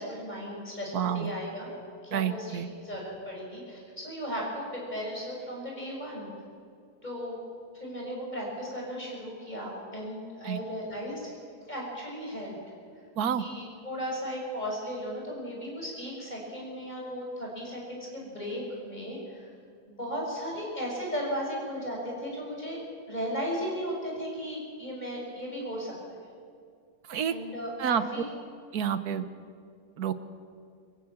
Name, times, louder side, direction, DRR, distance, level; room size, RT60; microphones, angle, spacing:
voice 1, 0.0-1.7 2.0-6.3 7.0-7.4 7.7-11.2 11.7-12.6 13.4-19.5 19.9-22.8 23.1-25.9 27.3-28.3, equal, 25° left, -3 dB, 6.7 m, -36 dB
voice 2, 0.9-1.3 2.1-2.7 10.4-10.6 13.2-13.4 27.1-27.3 27.8-28.0 28.7-29.3 30.0-30.1, right 8 dB, 75° right, 12 dB, 1.5 m, -28 dB
25.0 x 15.5 x 7.3 m, 2.3 s
omnidirectional pair, 1.7 m